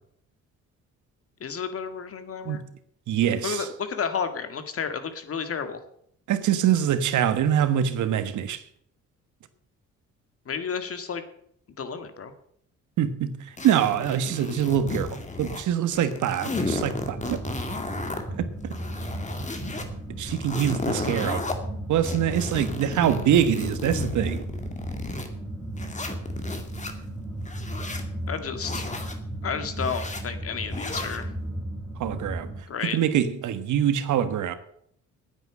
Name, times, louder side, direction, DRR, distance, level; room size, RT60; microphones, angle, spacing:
voice 1, 1.4-2.6 3.4-5.8 10.5-11.2 11.8-12.3 28.3-28.8 29.4-31.3 32.7-33.0, left 6 dB, 50° left, 1.9 m, -31 dB
voice 2, 3.1-3.7 6.3-8.6 13.0-13.4 13.6-17.4 18.3-18.4 20.2-21.4 21.9-24.4 32.0-32.5 32.8-34.6, right 9 dB, 75° right, 1.4 m, -24 dB
sound 1, 13.6-15.7 15.9-18.2 18.6-19.9 20.3-21.5 22.0-25.3 25.8-26.9 27.4-28.1 28.6-29.2 29.8-30.2 30.7-31.2, left 2 dB, 25° left, 2.2 m, -33 dB
sound 2, 16.5-32.6, right 1 dB, ahead, 3.4 m, -35 dB
9.6 x 9.1 x 8.6 m
cardioid pair, 90°, 30 cm